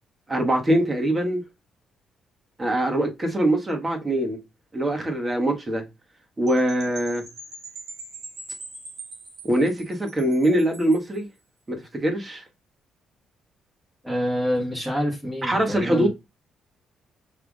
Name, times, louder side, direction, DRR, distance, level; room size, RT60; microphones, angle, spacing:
voice 1, 0.3-1.4 2.6-4.4 4.7-5.8 6.4-7.2 9.4-11.3 11.7-12.4 15.4-16.1, right 1 dB, 25° right, 1.4 m, -23 dB
Percussion / Wind chime, 6.5-11.2, right 3 dB, 75° right, 3.1 m, -42 dB
voice 2, 14.0-16.1, equal, 10° right, 1.8 m, -26 dB
5.8 x 3.4 x 2.4 m
cardioid pair, 90°, 0 cm